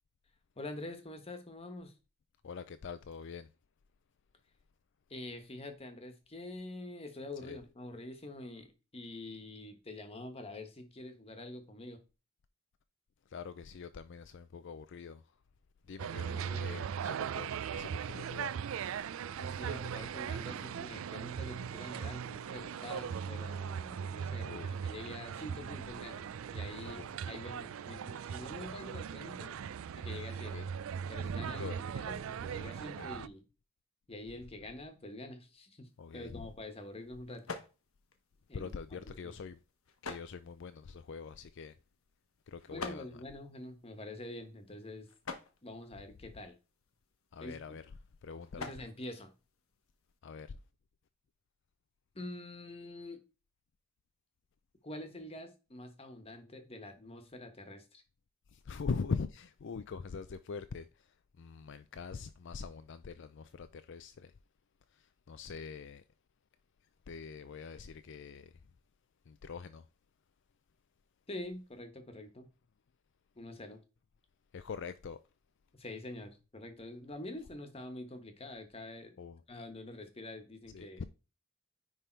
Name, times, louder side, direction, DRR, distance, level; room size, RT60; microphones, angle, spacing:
voice 1, 0.6-1.9 5.1-12.0 16.1-16.7 19.4-29.5 29.9-30.7 31.1-33.4 34.1-37.4 38.5-38.7 39.2-39.3 42.7-45.1 45.6-46.5 47.4-47.8 48.6-49.3 52.1-53.2 54.8-58.0 71.3-72.5 73.3-73.8 75.7-79.2 79.5-81.0, left 1 dB, 30° left, 1.2 m, -46 dB
voice 2, 2.4-3.5 7.4-7.6 13.3-15.2 15.9-18.5 24.4-24.8 26.8-27.1 30.5-30.7 31.5-31.8 33.0-33.1 36.0-36.5 38.5-39.6 40.0-41.8 42.5-43.1 47.3-47.9 48.2-48.7 50.2-50.6 58.5-64.3 64.9-66.0 67.1-68.5 69.3-69.9 74.5-75.2 79.2-79.4 80.7-81.0, left 5 dB, 60° left, 0.4 m, -43 dB
sound 1, 16.0-33.3, right 7 dB, 70° right, 0.4 m, -39 dB
sound 2, 35.8-50.2, left 4 dB, 80° left, 1.1 m, -51 dB
9.9 x 3.5 x 4.5 m
head